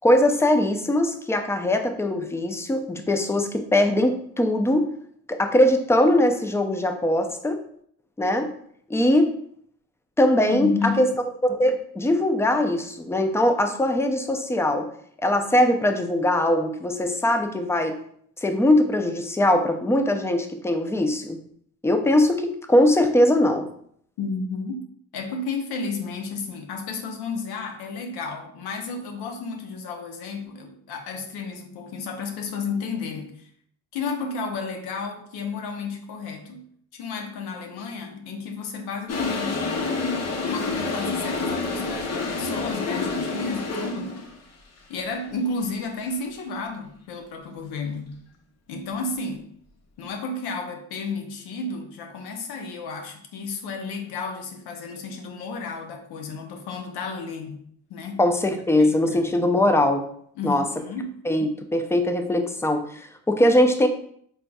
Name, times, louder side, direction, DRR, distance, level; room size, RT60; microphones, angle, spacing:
voice 1, 0.0-4.9 5.3-7.6 8.2-8.5 8.9-9.3 10.2-11.1 11.4-14.9 15.2-18.0 18.4-21.4 21.8-23.7 58.2-60.0 60.4-60.6 61.2-63.9, left 1 dB, 5° left, 6 dB, 0.4 m, -21 dB
voice 2, 10.5-11.0 24.2-24.8 25.1-33.5 33.9-36.6 36.9-39.9 40.4-44.1 44.9-48.1 48.7-49.5 50.0-57.6 57.9-58.2 58.5-59.2 60.4-61.1, left 4 dB, 75° left, 4 dB, 0.8 m, -32 dB
Toilet flush, 39.1-44.3, left 3 dB, 40° left, 0.8 m, -28 dB
3.9 x 3.6 x 2.3 m, 0.64 s
supercardioid pair, 80°, 38 cm